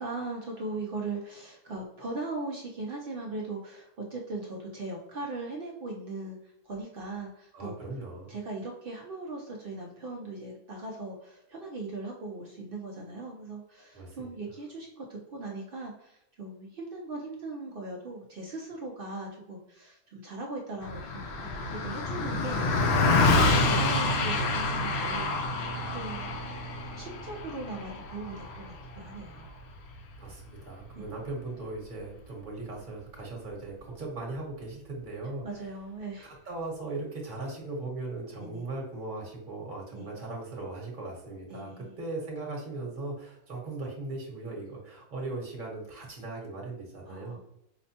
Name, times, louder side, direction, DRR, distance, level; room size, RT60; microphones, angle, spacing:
voice 1, 0.0-7.8 8.3-25.7 25.9-26.4 26.9-29.6 30.9-31.1 35.4-36.3 38.4-38.7 39.9-40.2 41.5-41.9 47.1-47.4, right 2 dB, 65° right, -1 dB, 0.5 m, -39 dB
voice 2, 7.5-8.4 13.9-14.3 30.2-35.4 36.2-47.4, right 2 dB, 35° right, -2 dB, 1.2 m, -38 dB
Car passing by, 20.8-30.4, left 2 dB, 65° left, 0.7 m, -28 dB
5.0 x 2.1 x 2.7 m, 0.81 s
omnidirectional pair, 1.5 m